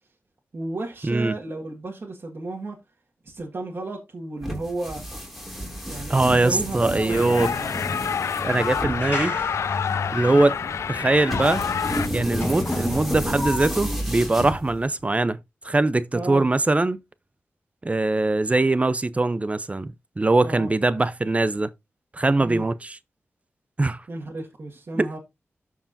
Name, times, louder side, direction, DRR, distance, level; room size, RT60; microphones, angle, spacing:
voice 1, 0.5-2.8 3.2-5.0 5.9-7.8 16.1-16.5 20.4-20.7 22.4-22.6 24.1-25.2, right 2 dB, 55° right, 1.7 m, -33 dB
sound 1, 4.4-15.0, equal, ahead, 2.9 m, -31 dB
voice 2, 6.1-7.5 8.4-9.4 10.1-10.6 10.9-11.6 12.1-15.4 15.6-17.0 17.8-21.7 22.1-23.0 23.8-24.0 25.0-25.1, right 2 dB, 30° right, 0.6 m, -22 dB
sound 2, 6.8-13.1, left 2 dB, 50° left, 4.6 m, -34 dB
sound 3, 7.1-12.1, left 7 dB, 85° left, 0.4 m, -28 dB
13.0 x 4.7 x 2.7 m
cardioid pair, 70°, 5 cm